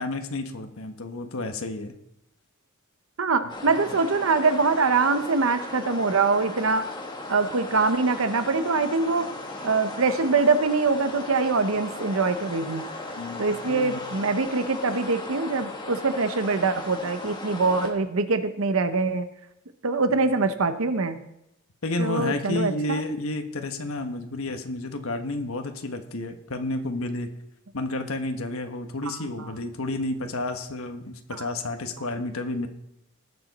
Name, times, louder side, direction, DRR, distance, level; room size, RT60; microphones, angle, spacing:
voice 1, 0.0-1.9 3.4-3.8 13.2-14.2 21.8-27.3 27.7-32.7, left 2 dB, 90° left, 6 dB, 1.2 m, -31 dB
voice 2, 3.2-6.9 7.3-9.3 9.6-12.8 13.4-19.3 19.8-21.2 22.0-23.0 29.4-29.5 31.4-31.5, right 4 dB, 75° right, 10 dB, 0.8 m, -24 dB
sound 1, 3.5-17.9, left 2 dB, 20° left, 1.6 m, -37 dB
19.0 x 6.9 x 4.1 m, 0.83 s
head